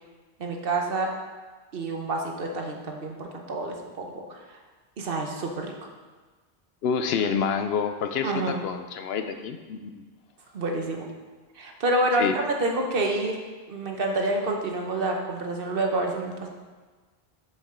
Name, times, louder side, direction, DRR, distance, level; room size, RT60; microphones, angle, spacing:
voice 1, 0.4-1.1 1.7-4.6 5.0-5.7 8.2-8.6 10.5-11.0 11.6-13.4 13.7-16.5, right 2 dB, 60° right, 2 dB, 1.1 m, -28 dB
voice 2, 6.8-10.0 12.2-12.3, left 6 dB, 75° left, 8 dB, 0.8 m, -28 dB
7.0 x 6.7 x 3.7 m, 1.3 s
omnidirectional pair, 1.1 m